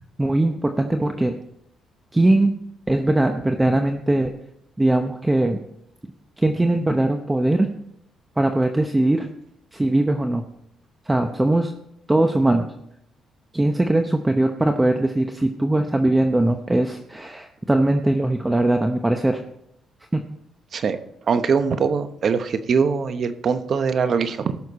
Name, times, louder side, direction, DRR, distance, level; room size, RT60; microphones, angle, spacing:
voice 1, 0.2-1.4 2.1-2.5 2.9-4.3 4.8-5.6 6.4-7.7 8.4-9.3 9.7-10.4 11.1-11.7 12.1-12.7 13.5-19.4 20.1-20.2, right 1 dB, 15° right, 5 dB, 0.8 m, -20 dB
voice 2, 21.3-24.6, right 5 dB, 55° right, 10 dB, 0.9 m, -22 dB
17.5 x 6.5 x 4.2 m, 0.78 s
cardioid pair, 90°, 0 cm